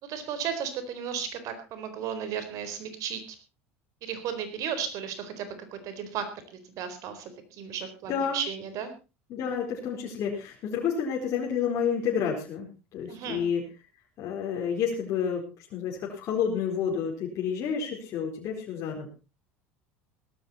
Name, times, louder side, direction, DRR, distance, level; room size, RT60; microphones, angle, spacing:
voice 1, 0.0-3.2 4.0-6.3 6.7-8.9 13.1-13.4, right 7 dB, 60° right, 10 dB, 4.2 m, -34 dB
voice 2, 8.1-8.4 9.3-12.7 12.9-13.6 14.2-15.4 15.7-19.1, left 7 dB, 55° left, -2 dB, 4.2 m, -29 dB
17.5 x 13.0 x 4.2 m, 0.31 s
supercardioid pair, 90°, 6 cm